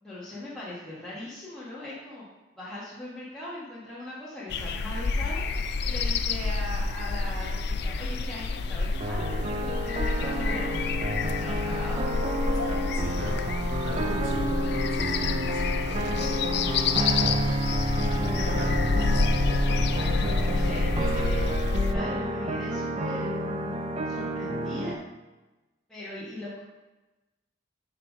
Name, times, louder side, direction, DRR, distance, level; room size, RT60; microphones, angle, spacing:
voice 1, 0.0-2.2 2.6-5.4 5.8-10.8 11.2-12.1 15.1-15.3 16.9-17.4 20.4-21.4 21.9-23.8 24.0-24.9 25.9-26.6, left 1 dB, 5° left, -11 dB, 1.3 m, -39 dB
sound 1, 4.5-21.9, left 4 dB, 55° left, 0.4 m, -28 dB
sound 2, 9.0-24.9, right 1 dB, 30° right, 0.5 m, -30 dB
voice 2, 12.0-14.6 14.9-16.6 17.9-20.5 20.9-21.8, equal, 80° right, -2 dB, 1.8 m, -39 dB
5.8 x 4.8 x 5.2 m, 1.1 s
head